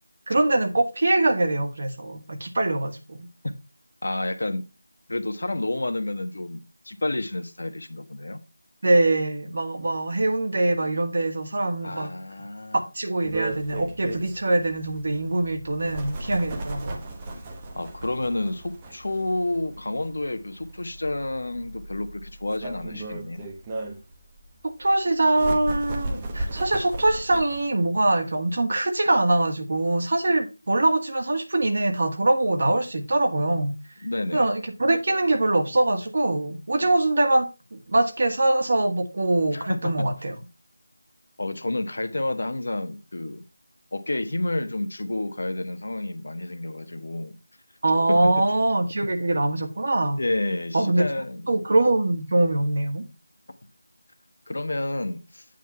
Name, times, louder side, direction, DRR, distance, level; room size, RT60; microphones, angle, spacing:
voice 1, 0.3-3.3 8.8-12.1 12.9-17.0 24.6-33.7 34.3-40.3 47.8-50.2 50.7-51.1 51.5-53.0, right 2 dB, 50° right, 1.7 m, -23 dB
voice 2, 4.0-4.6 5.1-8.4 11.8-12.8 17.3-17.4 17.7-23.5 34.0-34.5 39.5-39.9 41.4-43.4 43.9-47.4 48.1-48.2 50.2-51.6 54.5-55.4, left 2 dB, 60° left, 1.1 m, -30 dB
sound 1, 13.2-27.7, right 2 dB, 15° right, 1.0 m, -36 dB
9.1 x 3.6 x 5.6 m
figure-of-eight pair, 170°, 0 cm